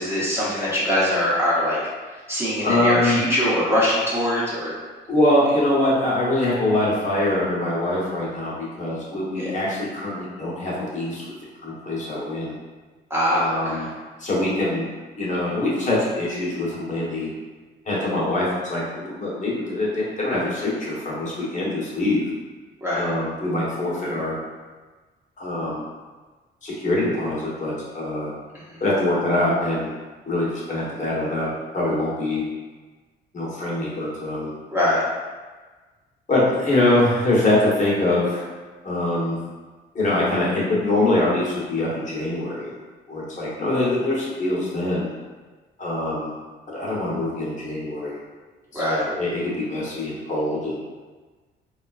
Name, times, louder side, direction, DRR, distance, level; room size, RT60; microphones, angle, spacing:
voice 1, 0.0-1.8 2.3-4.7 9.4-9.5 13.1-13.8 22.8-23.1 34.7-35.0 48.7-49.0, left 1 dB, 10° right, -8 dB, 1.0 m, -22 dB
voice 2, 2.6-3.2 5.1-11.2 11.6-12.5 13.3-13.9 14.2-14.8 15.2-17.3 17.8-22.3 22.9-24.4 25.4-25.8 26.6-28.3 28.8-29.9 30.3-32.4 33.3-34.5 36.3-38.4 38.8-39.4 39.9-42.7 43.1-45.1 45.8-46.3 46.7-48.2 48.7-50.8, left 1 dB, 40° left, -6 dB, 1.1 m, -23 dB
3.5 x 2.3 x 2.4 m, 1.3 s
cardioid pair, 90°, 20 cm